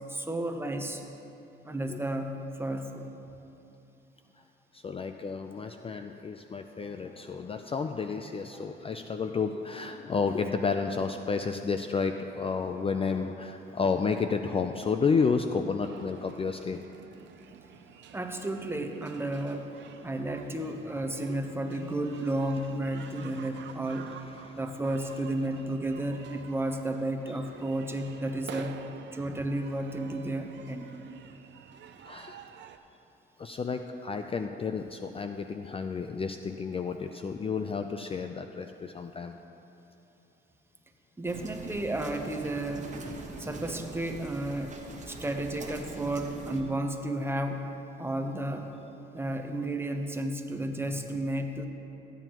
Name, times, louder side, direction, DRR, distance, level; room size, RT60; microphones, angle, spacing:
voice 1, 0.1-1.0 1.6-2.3 2.6-3.1 18.1-19.7 20.0-24.1 24.5-28.8 29.1-30.9 41.2-42.9 43.4-47.7 48.0-48.7 49.1-51.7, right 1 dB, 10° right, 5 dB, 0.8 m, -32 dB
voice 2, 4.7-16.8 21.3-21.4 24.3-24.6 32.0-32.5 33.4-39.4, left 5 dB, 30° left, 6 dB, 0.4 m, -31 dB
sound 1, 15.8-32.8, right 8 dB, 65° right, 0.5 m, -50 dB
sound 2, 41.3-46.6, right 2 dB, 35° right, 1.2 m, -43 dB
14.0 x 9.1 x 3.0 m, 2.9 s
cardioid pair, 90°, 20 cm